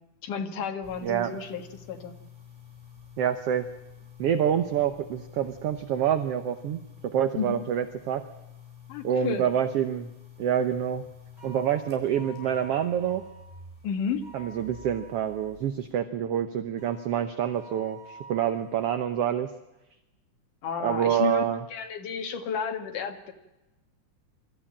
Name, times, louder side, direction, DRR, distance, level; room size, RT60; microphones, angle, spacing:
voice 1, 0.2-2.1 7.3-7.7 8.9-9.4 13.8-14.2 20.6-23.3, left 6 dB, 75° left, 5 dB, 3.4 m, -32 dB
sound 1, 0.8-15.9, left 6 dB, 20° right, 6.0 m, -49 dB
voice 2, 3.2-3.7 4.2-8.2 9.0-10.1 10.4-11.0 11.4-13.2 14.3-19.5 20.8-21.6, right 9 dB, 65° right, 10 dB, 1.6 m, -27 dB
sound 2, 11.4-13.5 14.2-15.5 16.8-19.0, equal, 35° left, 7.2 m, -49 dB
24.5 x 14.0 x 8.8 m, 0.99 s
omnidirectional pair, 3.7 m